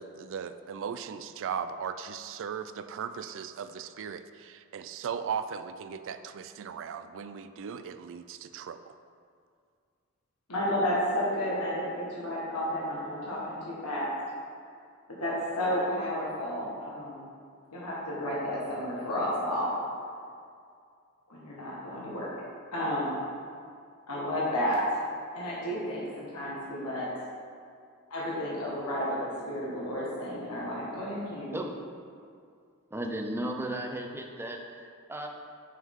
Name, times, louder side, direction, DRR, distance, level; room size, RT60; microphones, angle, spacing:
voice 1, 0.0-8.9, right 7 dB, 60° right, 11 dB, 0.4 m, -37 dB
voice 2, 10.5-14.1 15.2-17.2 17.7-19.7 21.3-22.3 22.7-23.2 24.1-24.9 25.3-27.1 28.1-31.6, equal, 85° left, -6 dB, 1.6 m, -32 dB
voice 3, 32.9-35.3, right 1 dB, 10° right, 2 dB, 0.6 m, -35 dB
9.2 x 5.5 x 3.7 m, 2.3 s
head